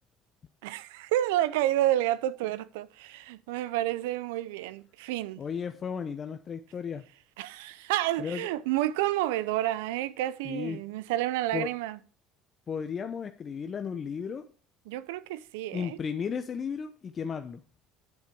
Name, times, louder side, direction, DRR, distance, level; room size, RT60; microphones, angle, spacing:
voice 1, 0.6-5.4 7.4-12.0 14.9-16.0, right 14 dB, 85° right, 0.5 m, -30 dB
voice 2, 5.4-7.0 8.2-8.5 10.4-10.8 11.5-11.7 12.7-14.4 15.7-17.6, left 6 dB, 40° left, 0.8 m, -34 dB
9.4 x 8.1 x 4.6 m
supercardioid pair, 80°, 0 cm